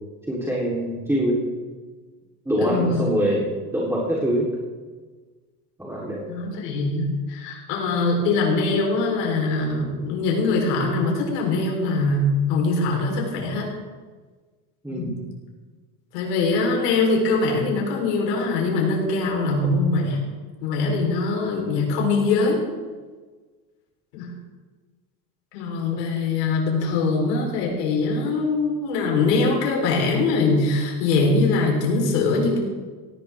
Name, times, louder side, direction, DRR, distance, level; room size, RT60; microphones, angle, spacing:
voice 1, 0.3-1.4 2.5-3.5 3.7-4.5 5.8-6.2 14.8-15.2, equal, 5° right, -5 dB, 3.8 m, -24 dB
voice 2, 2.6-3.1 6.3-13.7 14.9-15.2 16.1-20.2 20.6-22.6 24.1-24.3 25.5-32.6, left 3 dB, 90° left, -1 dB, 4.3 m, -22 dB
18.0 x 15.0 x 3.7 m, 1.4 s
supercardioid pair, 105°, 47 cm